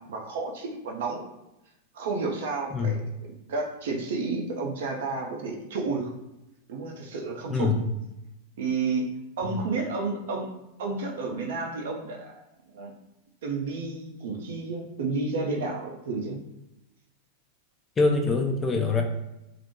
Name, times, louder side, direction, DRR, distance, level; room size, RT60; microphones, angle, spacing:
voice 1, 0.1-1.3 1.9-3.0 3.5-6.1 6.7-7.7 8.6-9.1 9.4-10.5 10.8-12.4 12.7-12.9 13.4-16.4, right 3 dB, 55° right, 1 dB, 0.4 m, -31 dB
voice 2, 7.5-7.9 9.5-9.6 18.0-19.0, left 3 dB, 20° left, 2 dB, 0.4 m, -24 dB
2.4 x 2.1 x 2.7 m, 0.91 s
figure-of-eight pair, 90°, 0 cm